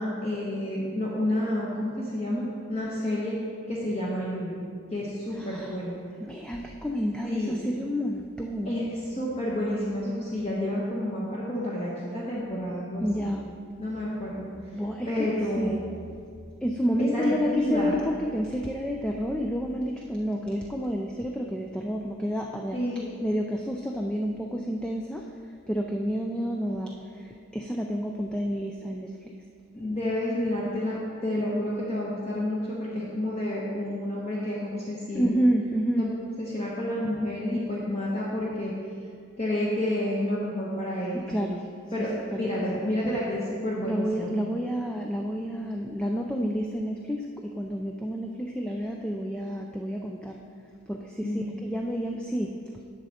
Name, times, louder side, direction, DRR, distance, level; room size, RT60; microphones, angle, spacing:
voice 1, 0.0-3.4 3.7-4.5 4.9-5.9 7.2-7.5 8.7-13.3 13.8-14.4 15.1-15.8 17.0-18.0 22.7-23.1 29.7-35.3 36.0-36.1 36.4-38.7 39.4-41.2 41.9-42.1 42.4-44.3 51.2-51.5, left 1 dB, 30° left, -6 dB, 1.0 m, -29 dB
voice 2, 5.3-5.7 6.2-8.7 13.0-13.4 14.7-15.8 16.6-22.8 23.2-25.2 25.7-26.9 27.5-29.1 35.1-36.1 41.1-41.6 42.0-42.5 43.8-50.4 50.9-52.5, equal, 5° left, 1 dB, 0.3 m, -29 dB
10.0 x 6.4 x 4.2 m, 2.3 s
head